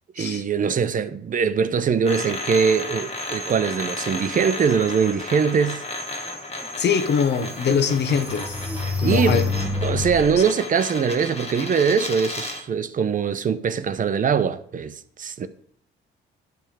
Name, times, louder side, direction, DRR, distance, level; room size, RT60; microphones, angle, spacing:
voice 1, 0.2-5.8 9.0-9.5 9.8-15.5, right 6 dB, 40° right, 0.7 m, -22 dB
sound 1, 2.0-12.7, left 2 dB, 30° left, 1.1 m, -33 dB
sound 2, 6.6-6.7 7.2-10.4, left 4 dB, 10° right, 1.0 m, -27 dB
voice 2, 6.8-8.5 9.0-9.5, left 6 dB, 60° left, 1.0 m, -22 dB
10.5 x 3.5 x 6.5 m
cardioid pair, 90°, 20 cm